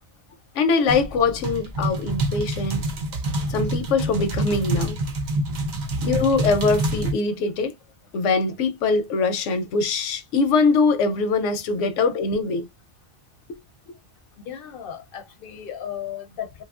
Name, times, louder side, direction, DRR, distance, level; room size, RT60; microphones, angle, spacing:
voice 1, 0.5-2.8 3.5-5.0 6.0-7.7 8.1-12.7, left 4 dB, 85° left, 0.9 m, -22 dB
sound 1, 0.9-7.1, right 1 dB, 50° right, 0.6 m, -26 dB
voice 2, 14.5-16.6, left 9 dB, 60° left, 0.7 m, -35 dB
2.9 x 2.3 x 2.3 m
omnidirectional pair, 1.2 m